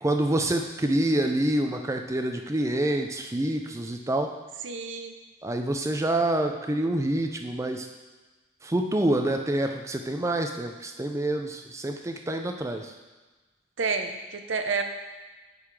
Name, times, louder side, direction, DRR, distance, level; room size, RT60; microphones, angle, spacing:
voice 1, 0.0-4.3 5.4-7.9 8.6-12.9, right 1 dB, 15° right, 4 dB, 0.5 m, -27 dB
voice 2, 4.6-5.1 13.8-14.8, right 4 dB, 70° right, 6 dB, 0.6 m, -29 dB
8.6 x 4.0 x 4.8 m, 1.2 s
head